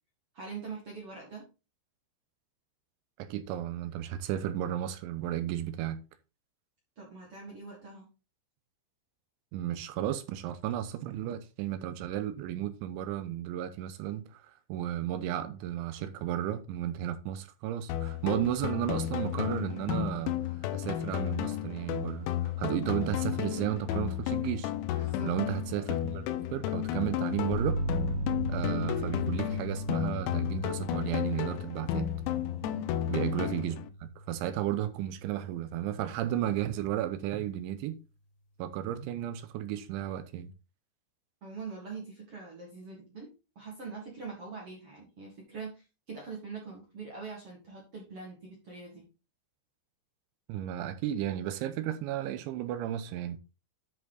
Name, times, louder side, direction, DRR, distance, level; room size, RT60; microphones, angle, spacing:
voice 1, 0.3-1.5 7.0-8.0 25.0-25.3 32.6-32.9 41.4-49.0, right 4 dB, 60° right, 1.4 m, -43 dB
voice 2, 3.2-6.0 9.5-20.4 20.7-24.7 25.2-26.2 26.5-27.8 28.5-32.1 33.1-33.8 34.3-38.0 38.6-40.5 50.5-53.4, right 12 dB, 80° right, 2.9 m, -33 dB
sound 1, 17.9-33.9, left 12 dB, 80° left, 2.7 m, -33 dB
sound 2, 27.5-35.2, right 1 dB, 65° left, 2.8 m, -37 dB
10.0 x 4.9 x 3.9 m
omnidirectional pair, 5.7 m